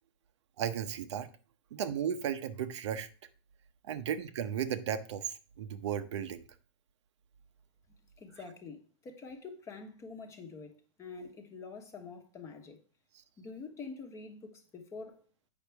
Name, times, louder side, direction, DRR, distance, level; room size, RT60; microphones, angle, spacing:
voice 1, 0.6-1.3 1.7-3.1 3.9-6.4, right 9 dB, 75° right, 0.8 m, -35 dB
voice 2, 8.2-12.8 13.4-15.2, left 4 dB, 20° left, 1.1 m, -46 dB
8.2 x 5.7 x 3.4 m
supercardioid pair, 150°, 15 cm